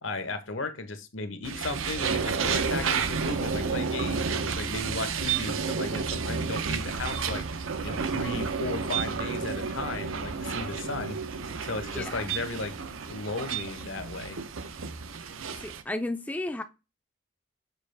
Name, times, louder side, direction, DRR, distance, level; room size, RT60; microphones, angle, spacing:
voice 1, 0.0-7.4 7.8-11.2 11.6-12.7 13.1-14.4, left 3 dB, 75° left, 1.1 m, -35 dB
sound 1, 1.4-15.8, right 5 dB, 85° right, 0.8 m, -31 dB
Raindrop / Drip, 4.0-5.3 6.5-7.9 9.1-10.5, right 7 dB, 45° right, 0.8 m, -49 dB
voice 2, 11.9-12.3 15.6-16.6, left 1 dB, 10° left, 0.4 m, -33 dB
7.0 x 4.8 x 3.4 m
head